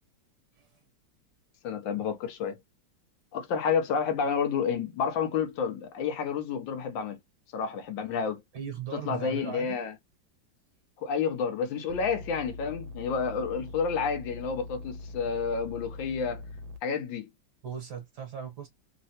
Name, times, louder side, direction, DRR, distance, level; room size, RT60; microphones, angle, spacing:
voice 1, 1.6-2.6 3.3-7.2 7.5-8.4 8.9-9.9 11.0-16.4 16.8-17.3, left 6 dB, 80° left, 1.5 m, -30 dB
voice 2, 8.5-9.8 17.6-18.7, right 8 dB, 60° right, 1.5 m, -38 dB
sound 1, 11.9-16.8, left 2 dB, 85° right, 1.3 m, -42 dB
3.8 x 2.1 x 2.7 m
omnidirectional pair, 2.1 m